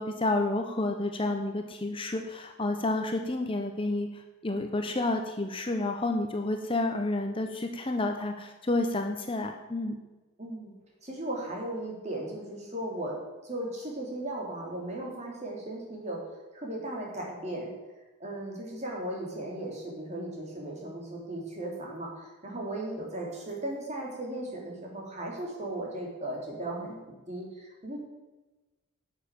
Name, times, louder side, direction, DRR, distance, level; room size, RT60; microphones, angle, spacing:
voice 1, 0.0-9.9, left 2 dB, 25° left, 5 dB, 0.8 m, -30 dB
voice 2, 10.4-10.7 11.0-13.2 13.4-16.2 16.5-17.7 18.2-28.0, right 1 dB, 35° right, -2 dB, 3.3 m, -36 dB
11.0 x 7.3 x 8.5 m, 1.2 s
head